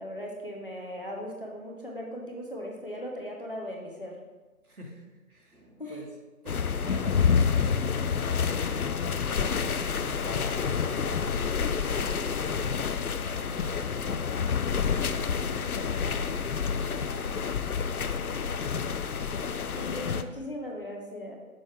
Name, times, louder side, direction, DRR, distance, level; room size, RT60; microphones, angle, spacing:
voice 1, 0.0-4.2 5.8-6.0 19.7-21.4, equal, 40° left, -1 dB, 1.0 m, -38 dB
voice 2, 4.6-6.1 6.4-11.7 12.0-14.5 15.1-17.6, left 1 dB, 85° right, -1 dB, 1.9 m, -46 dB
sound 1, 6.5-20.2, left 6 dB, 80° left, 0.6 m, -28 dB
6.2 x 5.9 x 3.4 m, 1.2 s
figure-of-eight pair, 175°, 43 cm